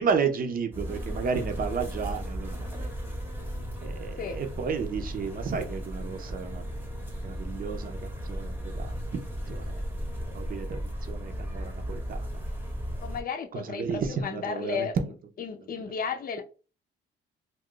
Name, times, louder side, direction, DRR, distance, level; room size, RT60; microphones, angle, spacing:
voice 1, 0.0-2.9 3.8-6.7 7.2-9.2 9.5-9.8 10.3-12.2 13.5-14.9 15.7-15.8, right 6 dB, 45° right, 0.7 m, -32 dB
sound 1, 0.7-13.2, equal, 10° right, 0.9 m, -35 dB
voice 2, 13.0-14.9 15.4-16.4, left 6 dB, 45° left, 0.6 m, -33 dB
2.4 x 2.3 x 3.7 m
cardioid pair, 90°, 20 cm